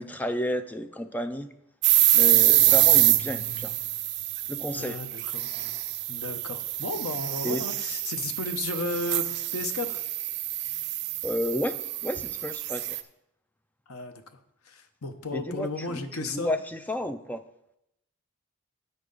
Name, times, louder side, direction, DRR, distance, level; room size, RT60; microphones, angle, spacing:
voice 1, 0.0-1.5 2.1-3.7 4.5-5.0 7.4-7.6 11.2-11.8 12.0-12.8 15.3-17.4, left 1 dB, 5° left, 9 dB, 0.4 m, -31 dB
sound 1, 1.8-13.0, right 15 dB, 50° right, 0.5 m, -25 dB
voice 2, 2.3-2.7 4.7-5.5 6.1-10.0 13.9-14.2 14.6-16.5, left 3 dB, 80° left, 7 dB, 0.9 m, -34 dB
11.0 x 7.5 x 4.0 m, 0.83 s
head